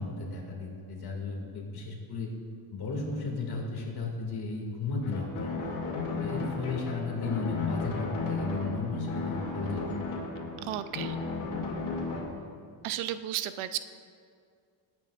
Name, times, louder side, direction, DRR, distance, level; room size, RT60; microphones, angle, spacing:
voice 1, 0.0-2.3 2.7-5.8 6.2-10.3 12.4-12.5, left 3 dB, 50° left, 0 dB, 2.4 m, -35 dB
sound 1, 5.0-12.2, left 3 dB, 85° left, 2.6 m, -34 dB
voice 2, 10.6-11.2 12.8-13.8, right 12 dB, 90° right, 12 dB, 0.7 m, -33 dB
19.5 x 9.0 x 2.5 m, 2.2 s
cardioid pair, 135°, 48 cm